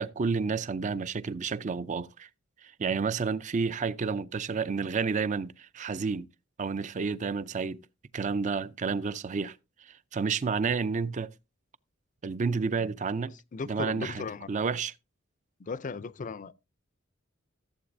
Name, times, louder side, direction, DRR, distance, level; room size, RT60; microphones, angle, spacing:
voice 1, 0.0-2.3 2.6-6.3 6.6-7.8 8.1-9.6 9.8-11.3 12.2-13.3 13.6-14.9, right 5 dB, 40° right, 0.4 m, -30 dB
voice 2, 13.5-14.5 15.6-16.5, left 4 dB, 40° left, 0.4 m, -36 dB
14.5 x 7.8 x 2.6 m
head